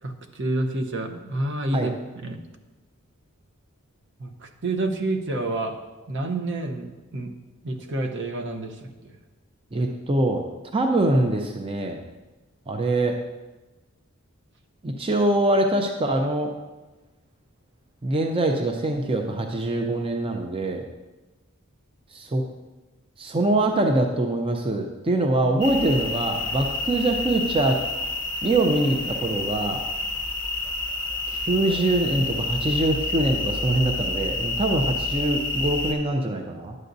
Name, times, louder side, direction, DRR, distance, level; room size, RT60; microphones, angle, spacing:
voice 1, 0.0-1.9 2.2-2.4 4.2-5.8 6.1-7.3 7.6-9.1, right 2 dB, 60° right, 5 dB, 0.8 m, -28 dB
voice 2, 9.7-10.4 10.7-12.0 12.7-13.2 14.8-16.5 18.0-20.8 22.1-22.4 23.2-27.8 28.4-29.8 31.3-36.8, right 2 dB, 25° right, 3 dB, 0.5 m, -23 dB
sound 1, 25.6-35.9, left 2 dB, 20° left, 0.9 m, -29 dB
11.0 x 8.0 x 2.6 m, 1.1 s
head